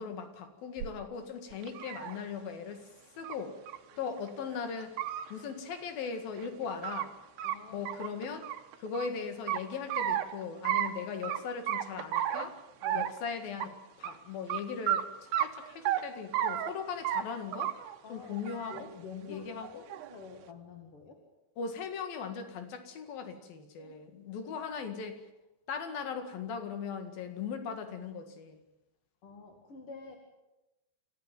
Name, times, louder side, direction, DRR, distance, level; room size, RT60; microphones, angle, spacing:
voice 1, 0.0-2.8 3.2-3.6 4.0-5.0 5.3-7.2 7.7-8.5 8.8-12.6 12.9-17.8 18.1-18.9 19.3-19.7 21.6-25.1 25.7-28.6, left 6 dB, 60° left, 8 dB, 3.6 m, -39 dB
sound 1, 0.8-0.9 1.5-2.2 3.2-3.4 3.7-3.8 4.2-4.3 4.8-5.3 6.4-7.1 7.4-7.6 7.9-9.1 9.5-10.3 10.7-10.9 11.2-11.4 11.7-12.5 12.8-13.2 13.6-13.7 14.0-14.1 14.5-14.6 14.9-15.0 15.3-16.0 16.3-16.7 17.1-17.2 17.5-18.0 18.3-18.8 19.6-20.1, right 11 dB, 70° right, 3.0 m, -32 dB
voice 2, 7.4-7.9 12.8-13.1 18.0-18.3 18.7-21.2 23.8-24.2 24.6-24.7 29.2-30.2, left 5 dB, 40° left, 3 dB, 2.2 m, -48 dB
27.5 x 14.5 x 9.3 m, 0.96 s
omnidirectional pair, 5.2 m